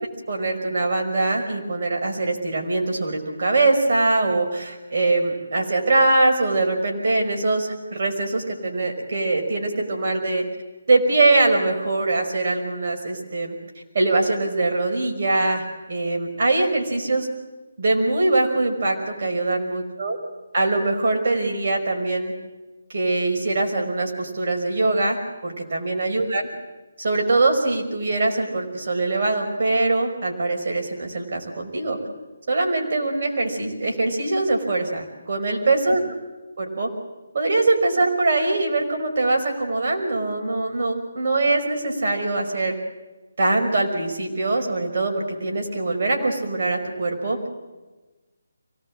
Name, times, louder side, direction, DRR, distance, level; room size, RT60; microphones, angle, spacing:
voice 1, 0.3-10.4 10.9-13.5 13.9-17.3 17.8-20.2 20.5-22.3 22.9-25.2 25.4-26.5 27.0-32.0 32.5-36.0 36.6-36.9 37.3-42.7 43.4-47.4, right 2 dB, 55° right, 1 dB, 5.4 m, -22 dB
24.5 x 18.5 x 7.7 m, 1.2 s
figure-of-eight pair, 155°, 0 cm